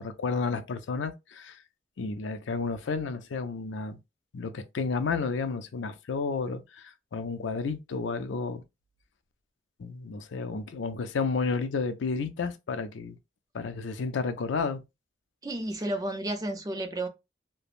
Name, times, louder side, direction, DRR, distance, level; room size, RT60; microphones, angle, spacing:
voice 1, 0.0-1.6 2.0-4.0 4.3-8.6 9.8-13.2 13.5-14.8, left 4 dB, 80° left, 0.4 m, -31 dB
voice 2, 15.4-17.1, right 1 dB, 20° right, 0.4 m, -32 dB
3.2 x 2.0 x 2.4 m
head